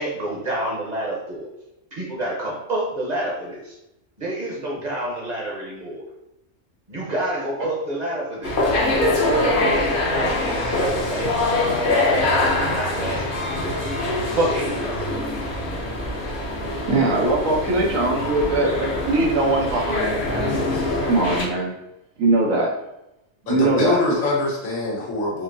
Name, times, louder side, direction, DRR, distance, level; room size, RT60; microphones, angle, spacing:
voice 1, 0.0-1.5 1.9-3.8 4.2-6.0 6.9-8.6 9.2-14.0 14.4-15.1, right 1 dB, 40° right, -3 dB, 0.8 m, -28 dB
sound 1, 8.4-21.4, left 2 dB, 50° left, 0.8 m, -24 dB
voice 2, 16.8-20.6 21.1-21.7 22.2-22.7 23.5-24.2, right 2 dB, 85° right, -2 dB, 1.3 m, -21 dB
voice 3, 23.5-25.4, left 2 dB, 80° left, -4 dB, 1.5 m, -24 dB
4.4 x 2.7 x 2.6 m, 0.88 s
omnidirectional pair, 1.3 m